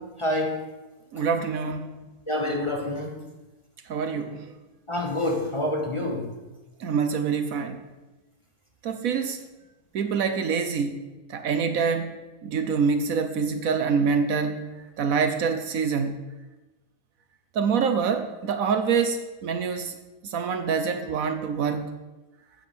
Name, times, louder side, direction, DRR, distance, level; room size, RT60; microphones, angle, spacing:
voice 1, 0.2-0.6 2.3-3.2 4.9-6.3, left 1 dB, 20° left, 0 dB, 1.3 m, -27 dB
voice 2, 1.1-1.9 3.9-4.4 6.8-7.8 8.8-9.4 9.9-11.0 11.3-14.7 15.0-16.2 17.5-19.9 20.2-21.9, right 5 dB, 70° right, 8 dB, 1.1 m, -26 dB
8.3 x 7.3 x 6.0 m, 1.1 s
omnidirectional pair, 1.6 m